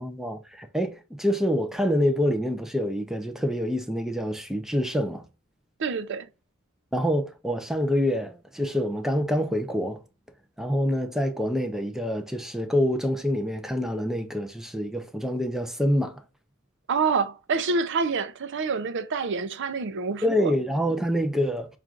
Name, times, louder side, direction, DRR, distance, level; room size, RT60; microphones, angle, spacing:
voice 1, 0.0-5.2 6.9-10.0 10.6-16.2 20.2-21.7, equal, ahead, 0.5 m, -26 dB
voice 2, 5.8-6.3 16.9-20.5, right 4 dB, 60° right, 0.5 m, -27 dB
5.9 x 2.5 x 2.4 m
head